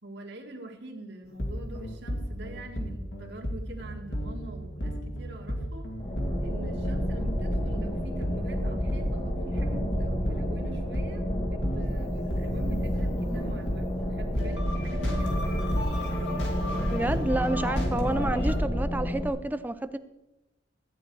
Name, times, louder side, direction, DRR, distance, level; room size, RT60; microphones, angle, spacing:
voice 1, 0.0-5.9 6.4-15.4, right 2 dB, 65° right, 0 dB, 1.9 m, -44 dB
sound 1, 1.4-18.6, equal, 70° left, 2.3 m, -33 dB
sound 2, 6.0-19.3, equal, 25° left, 1.3 m, -30 dB
voice 2, 16.9-20.0, right 1 dB, 10° right, 11 dB, 0.4 m, -29 dB
14.0 x 9.3 x 4.6 m, 0.98 s
head